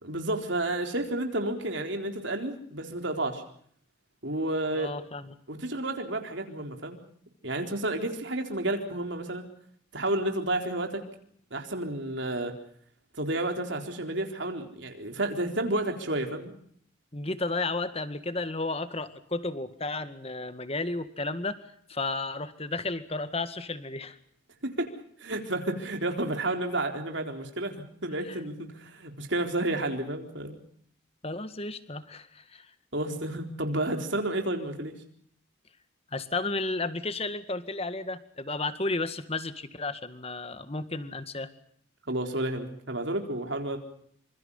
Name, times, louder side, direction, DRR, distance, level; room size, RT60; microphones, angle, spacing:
voice 1, 0.0-3.4 4.2-4.9 5.5-7.0 7.4-9.5 9.9-11.0 11.5-12.5 13.2-16.5 24.6-24.9 25.2-30.6 32.9-34.9 42.1-43.8, right 1 dB, 60° right, 4 dB, 4.1 m, -31 dB
voice 2, 4.7-5.3 17.1-21.6 21.9-24.2 28.3-28.4 31.2-32.7 36.1-41.5, left 3 dB, 30° left, 11 dB, 1.9 m, -33 dB
28.5 x 26.5 x 5.6 m, 0.64 s
head